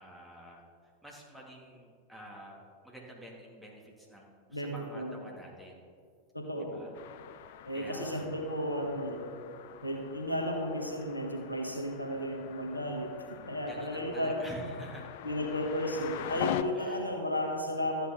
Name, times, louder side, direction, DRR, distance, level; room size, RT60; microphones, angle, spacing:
voice 1, 0.0-2.6 2.8-5.8 6.6-7.0 7.5-8.2 13.6-15.1 16.7-17.1, right 1 dB, ahead, -3 dB, 2.2 m, -49 dB
voice 2, 4.5-5.1 6.3-6.8 7.6-9.3 9.8-13.1 13.5-14.4 15.2-18.1, equal, 85° left, 2 dB, 1.2 m, -34 dB
sound 1, 6.9-16.6, left 11 dB, 50° left, 0.4 m, -42 dB
12.5 x 8.6 x 3.6 m, 2.1 s
figure-of-eight pair, 90°, 0 cm